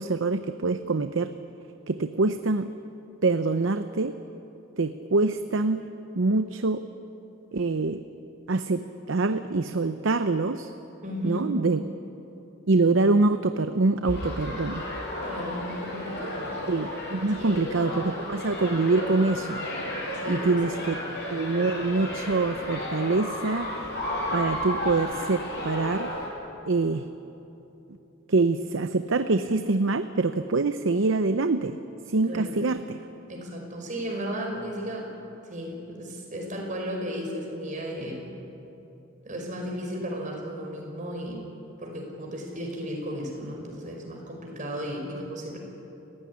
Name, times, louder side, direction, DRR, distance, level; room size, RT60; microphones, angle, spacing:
voice 1, 0.0-1.3 1.9-2.7 3.2-4.1 4.8-5.9 6.1-6.8 7.5-8.0 8.5-8.8 9.1-10.7 11.2-11.9 12.7-14.8 16.7-19.6 20.3-21.0 21.3-23.7 24.3-26.1 26.7-27.1 28.3-31.8 32.1-33.0, right 3 dB, 70° right, 10 dB, 0.7 m, -25 dB
voice 2, 11.0-11.5 15.2-16.5 17.4-17.6 20.1-20.5 32.3-32.5 33.3-35.1 35.4-38.3 39.2-41.4 41.8-45.6, equal, 40° right, 0 dB, 5.5 m, -34 dB
sound 1, 14.0-26.3, left 1 dB, 55° left, 7.6 m, -33 dB
29.0 x 15.5 x 9.8 m, 2.9 s
head